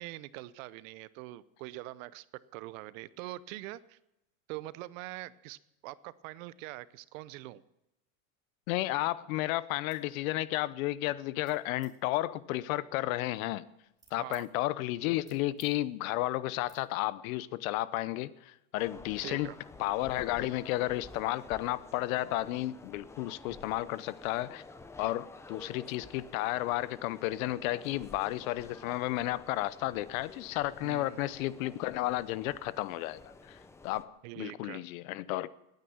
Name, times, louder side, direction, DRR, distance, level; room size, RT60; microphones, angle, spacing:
voice 1, 0.0-2.2 2.5-4.0 4.5-5.6 5.8-7.6 14.2-14.4 19.2-19.6 30.8-31.2 34.2-34.8, right 17 dB, 70° right, 0.8 m, -43 dB
voice 2, 8.7-13.7 14.1-19.5 19.8-24.6 25.0-33.6 33.8-35.5, left 16 dB, 75° left, 0.8 m, -33 dB
sound 1, 9.9-10.1 10.5-10.9 11.4-11.9 12.6-14.4 14.9-15.7 16.0-16.2 16.6-16.8, right 4 dB, 10° right, 2.3 m, -62 dB
sound 2, 18.8-34.0, left 3 dB, 5° left, 0.5 m, -51 dB
18.0 x 9.4 x 7.1 m
cardioid pair, 160°, 41 cm